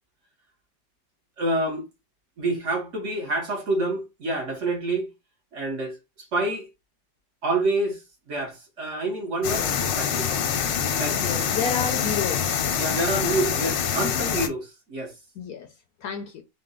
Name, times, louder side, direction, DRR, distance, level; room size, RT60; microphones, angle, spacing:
voice 1, 1.4-1.9 2.4-5.1 5.5-6.0 6.3-6.7 7.4-8.0 8.3-10.5 11.0-11.3 12.8-15.1, right 2 dB, 50° right, 1.1 m, -27 dB
sound 1, 9.4-14.5, left 8 dB, 85° left, 1.4 m, -25 dB
voice 2, 11.1-12.5 13.2-13.6 15.4-16.4, left 6 dB, 70° left, 0.9 m, -31 dB
4.0 x 2.1 x 3.7 m
omnidirectional pair, 1.9 m